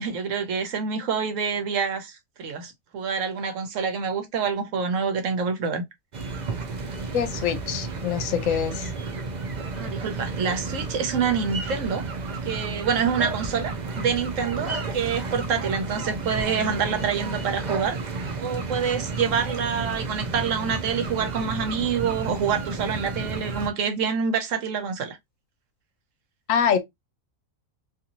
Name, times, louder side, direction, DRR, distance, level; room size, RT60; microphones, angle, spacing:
voice 1, 0.0-5.8 9.8-12.0 12.4-18.0 18.4-25.2, right 6 dB, 70° right, 1.0 m, -27 dB
sound 1, 6.1-23.7, right 3 dB, 50° right, 0.5 m, -32 dB
voice 2, 7.1-8.9 26.5-26.8, left 8 dB, 75° left, 1.0 m, -24 dB
2.6 x 2.6 x 2.8 m
omnidirectional pair, 1.4 m